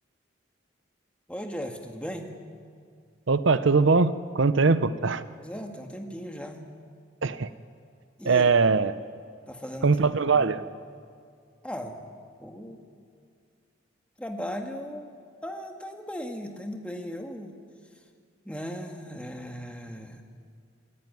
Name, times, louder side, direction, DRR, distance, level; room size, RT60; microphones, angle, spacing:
voice 1, 1.3-2.3 5.4-6.6 8.2-8.5 9.5-10.0 10.3-10.5 11.6-12.0 12.4-12.8 14.2-15.1 15.4-17.5 18.5-20.2, equal, 5° left, 3 dB, 1.7 m, -37 dB
voice 2, 3.3-5.2 7.2-7.5 8.2-9.0 9.8-10.6, right 4 dB, 80° right, 13 dB, 0.7 m, -21 dB
26.5 x 14.0 x 9.6 m, 2.2 s
head